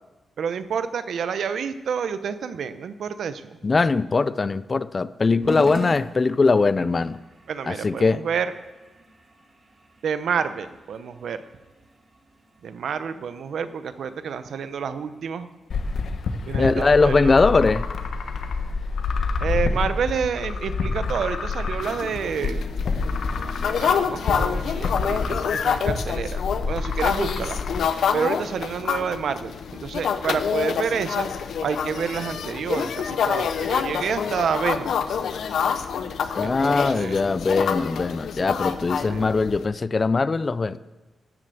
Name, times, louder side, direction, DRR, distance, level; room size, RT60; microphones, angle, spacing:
voice 1, 0.4-3.6 7.5-8.5 10.0-11.4 12.6-15.5 16.4-17.4 19.4-22.6 23.8-27.6 28.1-31.3 31.6-35.0 36.4-37.2 39.0-39.2, right 7 dB, 75° right, 11 dB, 0.7 m, -29 dB
voice 2, 3.6-7.2 7.7-8.2 16.6-17.8 36.4-40.8, left 4 dB, 30° left, 16 dB, 0.4 m, -21 dB
sound 1, 5.4-24.0, right 2 dB, 30° right, 1.8 m, -46 dB
sound 2, 15.7-27.8, left 4 dB, 65° left, 1.0 m, -28 dB
sound 3, 21.8-39.7, left 7 dB, 80° left, 0.8 m, -27 dB
12.0 x 7.6 x 7.8 m, 1.1 s
wide cardioid pair, 145°, 0 cm